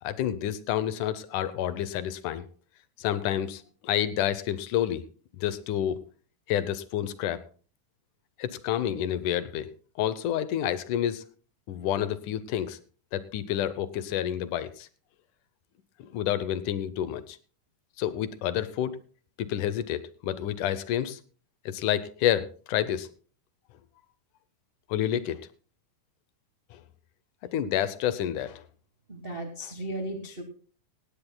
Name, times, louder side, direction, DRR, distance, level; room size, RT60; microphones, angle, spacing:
voice 1, 0.0-2.5 3.0-5.0 5.4-6.0 6.5-7.4 8.4-9.7 10.0-11.2 11.7-12.8 13.1-14.9 16.1-17.4 18.0-19.0 19.4-21.2 21.7-23.1 24.9-25.4 26.7-26.8 27.5-28.6 29.6-29.7, left 11 dB, 75° left, 14 dB, 2.2 m, -29 dB
voice 2, 29.1-30.4, right 1 dB, 45° right, 4 dB, 0.7 m, -35 dB
17.0 x 17.0 x 2.2 m, 0.41 s
omnidirectional pair, 3.7 m